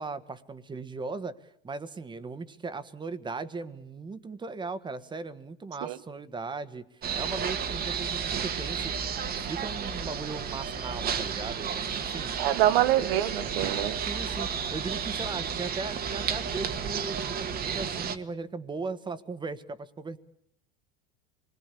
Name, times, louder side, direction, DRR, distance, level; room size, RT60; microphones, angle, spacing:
voice 1, 0.0-6.8 7.1-8.9 9.3-12.3 13.0-13.2 14.0-20.2, right 4 dB, 15° right, 1.5 m, -38 dB
sound 1, 7.0-18.2, right 7 dB, 30° right, 1.6 m, -32 dB
voice 2, 12.4-14.0, right 13 dB, 75° right, 1.4 m, -25 dB
26.5 x 21.5 x 8.4 m
supercardioid pair, 130°, 29 cm